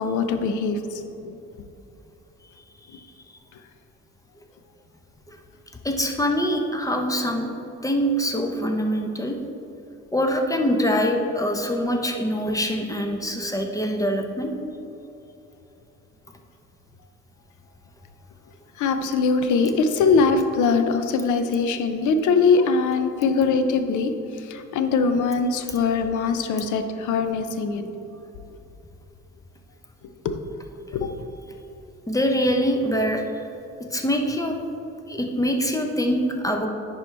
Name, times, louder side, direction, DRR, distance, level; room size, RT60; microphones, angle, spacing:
voice 1, 0.0-1.4 18.8-27.9 30.2-30.4 30.9-31.1, left 4 dB, 80° left, 8 dB, 0.6 m, -22 dB
voice 2, 5.8-7.5 7.8-9.4 10.1-14.5 32.1-33.4 33.9-34.6 35.1-36.7, equal, 10° left, 3 dB, 0.8 m, -24 dB
10.0 x 4.7 x 3.4 m, 2.9 s
cardioid pair, 90°, 30 cm